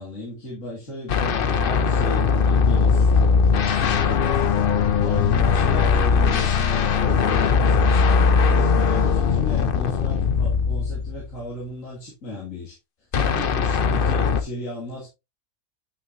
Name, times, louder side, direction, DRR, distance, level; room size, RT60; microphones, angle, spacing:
voice 1, 0.0-4.7 5.0-12.7 13.1-15.1, left 1 dB, 65° left, 3.0 m, -35 dB
sound 1, 1.1-11.3 13.1-14.4, left 5 dB, 50° left, 0.8 m, -20 dB
9.7 x 6.3 x 2.7 m
omnidirectional pair, 1.5 m